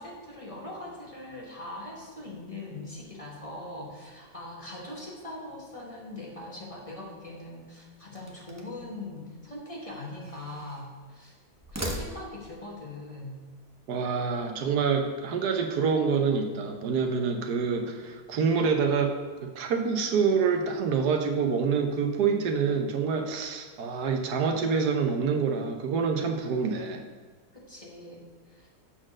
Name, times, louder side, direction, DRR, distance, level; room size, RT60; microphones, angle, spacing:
voice 1, 0.0-11.4 11.7-13.4 27.5-28.7, left 2 dB, 25° left, -3 dB, 1.2 m, -41 dB
sound 1, 8.1-8.9 9.8-10.9 11.5-12.6, right 1 dB, 15° right, 0.5 m, -39 dB
voice 2, 13.9-19.1 19.4-27.0, right 5 dB, 90° right, 4 dB, 1.4 m, -26 dB
7.4 x 4.4 x 6.1 m, 1.4 s
omnidirectional pair, 1.7 m